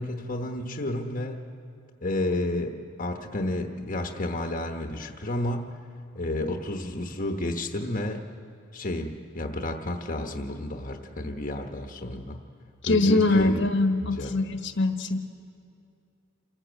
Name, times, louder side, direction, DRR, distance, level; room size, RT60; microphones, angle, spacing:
voice 1, 0.0-1.4 2.0-5.7 6.1-8.3 8.7-9.1 9.3-12.4 12.8-13.6 14.0-14.3, left 1 dB, 40° left, 3 dB, 1.1 m, -31 dB
voice 2, 12.8-15.2, left 2 dB, 60° left, 6 dB, 1.2 m, -23 dB
28.0 x 14.0 x 8.1 m, 2.6 s
head